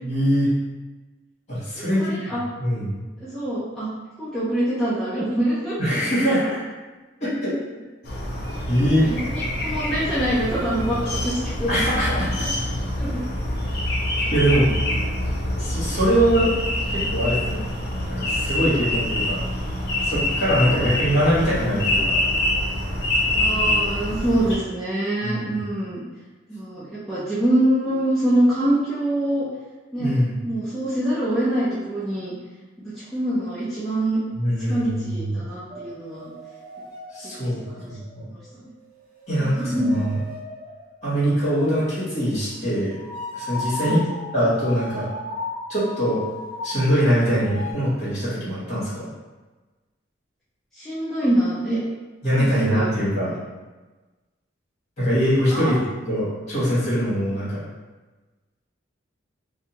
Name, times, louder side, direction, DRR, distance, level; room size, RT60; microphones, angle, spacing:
voice 1, 0.0-0.5 1.5-3.0 5.8-6.6 7.2-7.5 8.7-9.1 11.7-12.5 14.3-14.7 15.6-16.5 16.9-17.6 18.1-19.4 20.0-22.2 25.2-25.5 30.0-30.4 34.3-35.4 37.1-37.6 37.9-38.3 39.3-40.2 41.0-43.0 43.3-44.0 44.3-45.1 45.7-46.2 46.6-49.1 52.2-53.4 55.0-57.6, equal, 40° left, -10 dB, 1.4 m, -22 dB
voice 2, 1.7-2.4 3.2-3.9 4.2-5.8 9.0-11.7 13.0-13.2 20.6-20.9 23.3-26.0 26.5-29.4 29.9-32.3 32.8-34.2 34.7-36.3 37.4-37.9 38.3-38.7 39.4-40.0 43.8-44.0 50.7-51.8 52.4-52.9 55.5-55.7, right 1 dB, ahead, -12 dB, 0.5 m, -25 dB
sound 1, 8.0-24.6, left 1 dB, 55° left, 0.6 m, -25 dB
sound 2, 35.7-38.6 38.9-41.4 42.9-47.7, left 2 dB, 45° right, 0.7 m, -36 dB
2.7 x 2.2 x 2.8 m, 1.2 s
head